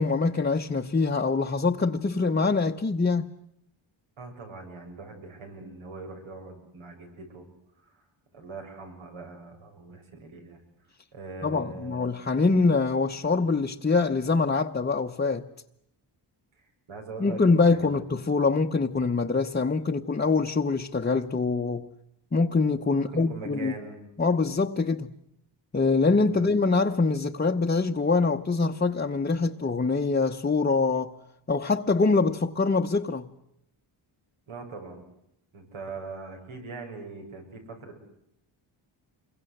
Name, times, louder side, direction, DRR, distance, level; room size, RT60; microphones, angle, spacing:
voice 1, 0.0-3.3 11.4-15.5 17.2-21.9 22.3-23.7 24.2-25.1 25.7-31.1 31.5-33.3, left 4 dB, 20° left, 0.9 m, -24 dB
voice 2, 4.2-7.4 7.8-8.0 8.3-10.6 11.1-12.1 16.5-17.4 17.7-18.0 22.9-24.0 26.3-26.5 34.5-35.0 35.5-38.1, right 4 dB, 85° right, 7.5 m, -42 dB
28.0 x 23.0 x 7.9 m
wide cardioid pair, 125°, 48 cm